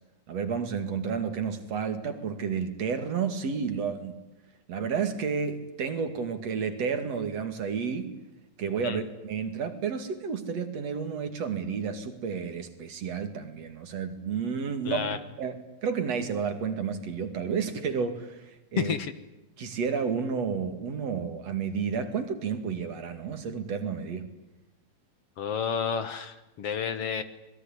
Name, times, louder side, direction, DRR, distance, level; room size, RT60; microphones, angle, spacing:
voice 1, 0.3-4.2 4.7-8.1 8.6-15.0 15.4-18.9 19.6-24.3, right 6 dB, 60° right, 9 dB, 3.4 m, -31 dB
voice 2, 14.9-15.2 18.8-19.1 25.4-27.2, left 7 dB, 60° left, 12 dB, 2.2 m, -30 dB
26.0 x 21.5 x 10.0 m, 0.94 s
omnidirectional pair, 3.4 m